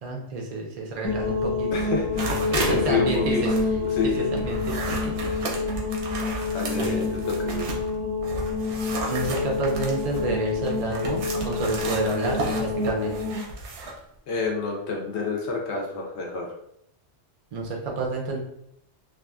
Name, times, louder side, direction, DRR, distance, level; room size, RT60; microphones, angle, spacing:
voice 1, 0.0-1.9 2.5-3.5 4.0-5.3 6.8-7.0 9.1-13.2 17.5-18.4, right 3 dB, 60° right, 0 dB, 0.4 m, -30 dB
sound 1, 1.0-13.4, left 3 dB, 35° left, 0.9 m, -28 dB
voice 2, 1.7-3.4 3.9-4.2 5.2-5.5 6.5-8.0 13.8-13.9 14.3-16.4, left 4 dB, 75° left, 0 dB, 0.9 m, -29 dB
sound 2, 2.2-2.8 3.1-7.9 8.2-14.0, right 3 dB, 80° right, 0.9 m, -33 dB
2.8 x 2.4 x 2.3 m, 0.73 s
omnidirectional pair, 1.2 m